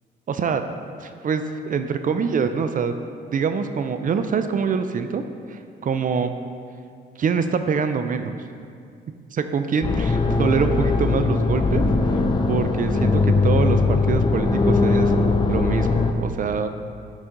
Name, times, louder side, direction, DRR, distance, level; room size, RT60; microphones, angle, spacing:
voice 1, 0.3-0.7 1.0-2.9 3.3-5.2 5.5-6.3 7.2-8.3 9.3-11.8 12.1-12.2 12.5-15.1 15.5-16.7, right 6 dB, 45° right, 9 dB, 0.4 m, -24 dB
sound 1, 9.8-16.1, left 3 dB, 25° left, 0.5 m, -20 dB
10.5 x 4.2 x 3.8 m, 2.3 s
cardioid pair, 90°, 20 cm